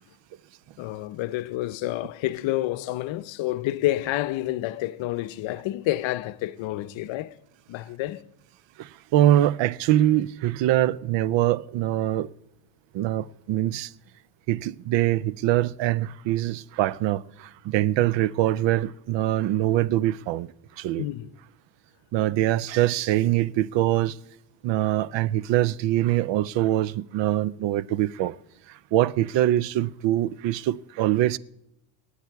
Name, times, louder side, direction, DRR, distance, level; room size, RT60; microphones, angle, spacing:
voice 1, 0.8-7.4 7.7-8.2 21.0-21.3, left 15 dB, 70° left, 0.7 m, -29 dB
voice 2, 8.8-12.3 12.9-13.9 14.5-20.5 20.8-21.0 22.1-24.2 24.6-28.4 28.7-31.4, right 13 dB, 65° right, 0.5 m, -23 dB
19.5 x 8.4 x 4.6 m
cardioid pair, 150°, 48 cm